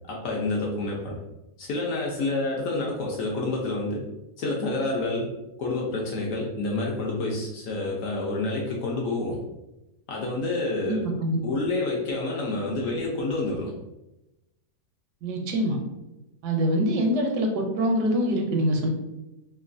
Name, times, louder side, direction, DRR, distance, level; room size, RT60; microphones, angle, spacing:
voice 1, 0.1-1.2 1.6-4.1 4.4-5.3 5.6-9.4 10.1-11.1 11.4-13.7, left 2 dB, 70° left, -2 dB, 0.8 m, -28 dB
voice 2, 10.8-11.4 15.2-15.8 16.4-18.9, equal, 85° right, 3 dB, 1.2 m, -24 dB
3.0 x 2.2 x 2.5 m, 0.95 s
omnidirectional pair, 1.7 m